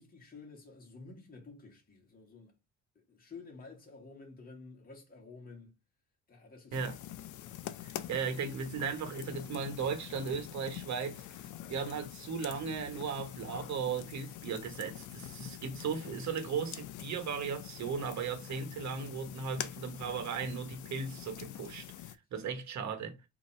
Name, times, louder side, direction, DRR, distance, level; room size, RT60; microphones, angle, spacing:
voice 1, 0.0-2.5 3.1-5.8 6.3-6.8, left 3 dB, 30° left, 1.8 m, -51 dB
sound 1, 6.7-22.2, left 12 dB, 80° left, 0.5 m, -45 dB
voice 2, 7.8-11.2 11.7-23.2, right 6 dB, 65° right, 1.2 m, -36 dB
3.8 x 2.9 x 4.3 m
cardioid pair, 90°, 30 cm